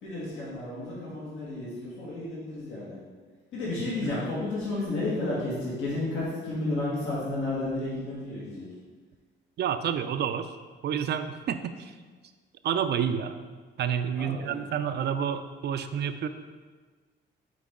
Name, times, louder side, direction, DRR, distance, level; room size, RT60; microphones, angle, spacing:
voice 1, 0.0-3.0 3.5-8.7 14.1-14.6, left 2 dB, 80° left, -8 dB, 1.8 m, -32 dB
voice 2, 9.6-10.5 10.8-11.9 12.6-13.3 13.8-16.3, right 8 dB, 60° right, 9 dB, 0.4 m, -29 dB
6.0 x 4.5 x 3.7 m, 1.4 s
cardioid pair, 90°, 20 cm